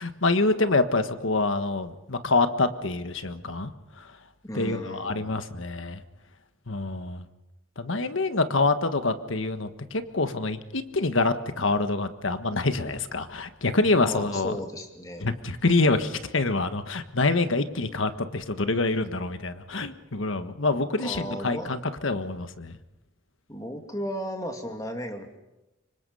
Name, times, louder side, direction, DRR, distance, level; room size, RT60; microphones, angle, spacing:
voice 1, 0.0-3.7 4.0-4.1 4.5-6.0 6.7-7.2 7.8-14.6 15.2-22.8, left 3 dB, 85° left, 9 dB, 1.5 m, -26 dB
voice 2, 4.4-5.4 14.0-15.3 21.0-21.7 23.5-25.4, equal, 20° left, 4 dB, 2.6 m, -35 dB
27.0 x 24.5 x 5.6 m, 0.99 s
head